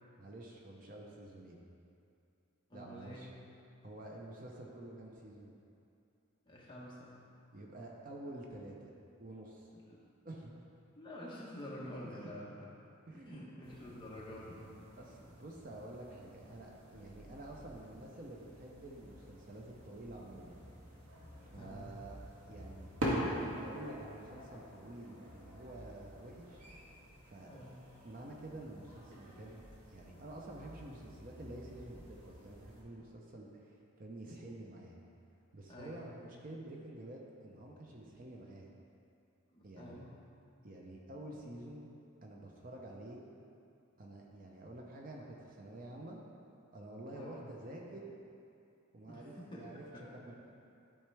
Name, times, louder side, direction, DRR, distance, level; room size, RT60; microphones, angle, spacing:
voice 1, 0.2-1.6 2.7-3.3 3.8-5.5 7.5-8.9 9.2-9.7 10.2-10.5 12.2-12.3 13.1-13.4 15.0-20.6 21.3-22.2 22.5-22.9 23.4-26.6 26.9-27.5 28.0-35.0 35.5-38.7 39.6-39.9 40.6-41.9 42.2-43.2 44.0-46.2 46.7-48.1 48.9-49.8 50.1-50.3, right 1 dB, 40° right, -1 dB, 0.7 m, -49 dB
voice 2, 2.7-3.3 6.5-7.1 9.9-10.0 11.0-12.7 13.1-14.6 21.4-22.0 27.4-27.8 35.7-36.1 39.5-40.1 47.1-47.5 49.1-50.1, left 1 dB, 20° left, -6 dB, 1.1 m, -48 dB
sound 1, 13.6-32.8, equal, 75° right, 1.5 m, -46 dB
12.0 x 4.4 x 3.4 m, 2.6 s
head